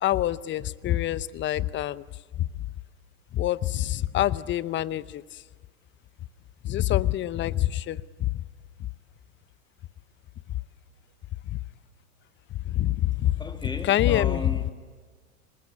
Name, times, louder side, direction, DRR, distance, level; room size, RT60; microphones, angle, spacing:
voice 1, 0.0-2.0 2.4-2.5 3.3-5.4 6.6-8.4 8.8-8.9 11.5-11.6 12.7-13.3 13.8-14.4, left 13 dB, 25° left, 19 dB, 0.7 m, -26 dB
voice 2, 13.1-14.7, left 2 dB, 10° left, 6 dB, 2.5 m, -36 dB
27.0 x 20.0 x 9.8 m, 1.4 s
hypercardioid pair, 90°, 44 cm